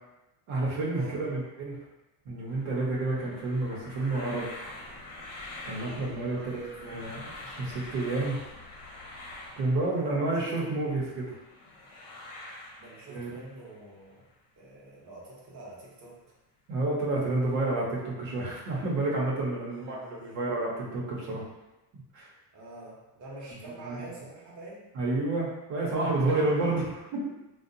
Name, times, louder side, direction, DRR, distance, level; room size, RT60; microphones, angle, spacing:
voice 1, 0.5-1.8 2.2-4.6 5.6-8.4 9.6-11.4 13.1-13.4 16.7-21.4 22.1-22.3 23.6-24.1 24.9-27.2, right 2 dB, 70° right, -5 dB, 0.9 m, -30 dB
sound 1, 2.5-13.9 14.3-14.4, left 2 dB, 50° left, 0.8 m, -45 dB
voice 2, 6.2-7.2 9.8-11.1 12.8-14.3 14.6-16.2 19.6-20.3 22.5-24.9 26.4-26.9, right 2 dB, 40° right, -5 dB, 0.9 m, -46 dB
2.6 x 2.2 x 2.6 m, 0.99 s
cardioid pair, 120°, 46 cm